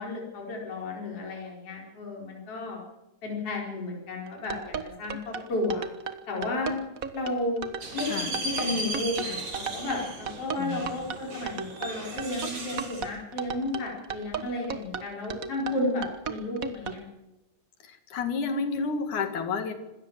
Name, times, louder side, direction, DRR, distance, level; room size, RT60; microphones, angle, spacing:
voice 1, 0.0-2.8 3.2-5.9 6.3-6.8 7.1-7.6 7.9-8.2 8.4-17.1, left 2 dB, 50° left, -1 dB, 5.4 m, -32 dB
sound 1, 4.3-17.0, right 6 dB, 45° right, 1.1 m, -35 dB
sound 2, 7.8-13.1, right 2 dB, 75° right, 6.6 m, -36 dB
voice 2, 8.1-8.4 10.6-11.0 17.8-19.7, left 4 dB, 85° left, 9 dB, 3.6 m, -31 dB
26.0 x 14.5 x 7.5 m, 0.99 s
omnidirectional pair, 3.4 m